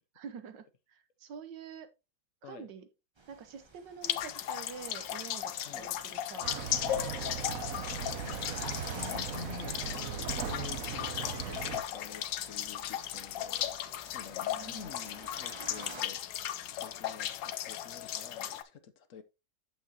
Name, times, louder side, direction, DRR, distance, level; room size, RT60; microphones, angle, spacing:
voice 1, 0.2-1.9 2.4-2.9 3.3-7.6 14.5-14.9, right 7 dB, 85° right, 1.6 m, -47 dB
sound 1, 3.2-16.0, right 3 dB, 25° right, 0.7 m, -52 dB
sound 2, 4.0-18.6, left 11 dB, 90° left, 1.4 m, -36 dB
sound 3, 6.4-11.8, right 8 dB, 60° right, 1.1 m, -38 dB
voice 2, 8.2-16.2 16.8-19.2, left 7 dB, 60° left, 0.9 m, -49 dB
8.5 x 7.2 x 2.8 m
omnidirectional pair, 1.9 m